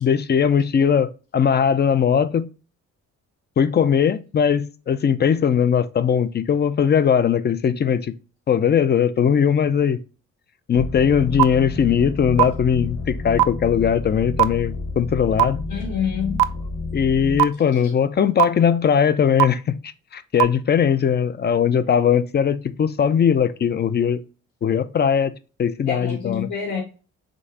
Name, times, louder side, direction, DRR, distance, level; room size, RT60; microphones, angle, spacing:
voice 1, 0.0-2.5 3.6-8.1 8.5-10.0 10.7-15.6 16.9-19.8 20.1-24.2 24.6-25.3 25.6-26.5, left 7 dB, 35° left, 0.4 m, -19 dB
sound 1, 10.7-17.4, left 3 dB, 50° left, 1.5 m, -30 dB
sound 2, 11.4-11.5 12.4-12.5 13.4-13.5 14.4-14.5 15.4-15.5 16.4-16.5 17.4-17.5 18.4-18.5 19.4-19.5 20.4-20.5, right 17 dB, 75° right, 0.5 m, -14 dB
voice 2, 15.7-16.7 25.9-26.8, left 7 dB, 80° left, 2.6 m, -27 dB
5.2 x 3.3 x 2.8 m
cardioid pair, 90°, 30 cm